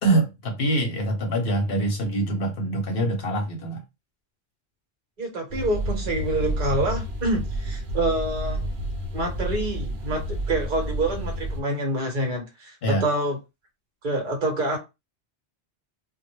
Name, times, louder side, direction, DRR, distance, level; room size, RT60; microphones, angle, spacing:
voice 1, 0.0-3.8 12.8-13.1, right 1 dB, 60° left, 0.8 m, -24 dB
voice 2, 5.2-8.7 9.1-13.4 14.0-14.8, right 2 dB, 45° right, 1.0 m, -27 dB
sound 1, 5.5-11.6, equal, 65° right, 0.8 m, -30 dB
2.2 x 2.1 x 3.0 m
omnidirectional pair, 1.2 m